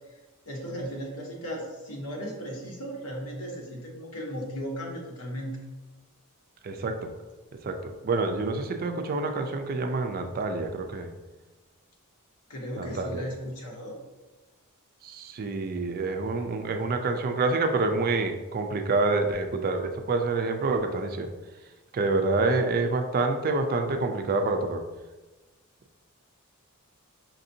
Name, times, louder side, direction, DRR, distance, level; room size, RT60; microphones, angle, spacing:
voice 1, 0.4-5.6 12.5-14.0, equal, 85° left, -1 dB, 1.0 m, -36 dB
voice 2, 6.6-7.1 7.6-11.1 12.8-13.3 15.0-21.3 21.9-24.8, right 3 dB, 40° right, 6 dB, 0.4 m, -27 dB
5.7 x 2.6 x 2.7 m, 1.1 s
head